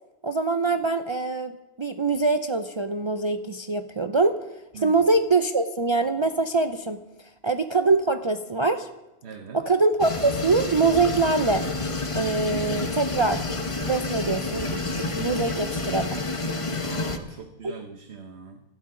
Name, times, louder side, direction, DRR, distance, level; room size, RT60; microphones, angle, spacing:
voice 1, 0.2-4.4 4.7-7.0 7.4-8.9 9.5-11.7 12.2-13.4 13.9-16.2, right 3 dB, 35° right, 7 dB, 0.6 m, -24 dB
voice 2, 4.7-5.1 9.2-9.6 16.8-18.6, right 6 dB, 90° right, 5 dB, 1.3 m, -41 dB
sound 1, 10.0-17.2, left 2 dB, 30° left, 1.1 m, -29 dB
24.5 x 12.5 x 3.8 m, 0.99 s
omnidirectional pair, 1.1 m